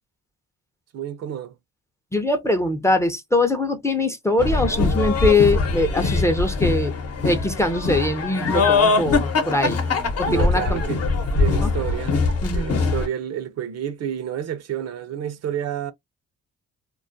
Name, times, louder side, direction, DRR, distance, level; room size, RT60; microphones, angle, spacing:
voice 1, 0.9-1.6 10.3-11.0 11.4-12.2 12.5-15.9, right 10 dB, 55° right, 0.5 m, -29 dB
voice 2, 2.1-6.9 7.2-9.8 10.2-10.8 11.6-11.7 12.4-12.8, left 2 dB, 10° left, 0.5 m, -22 dB
sound 1, 4.4-13.1, left 4 dB, 55° left, 0.8 m, -22 dB
2.3 x 2.1 x 2.5 m
cardioid pair, 90°, 30 cm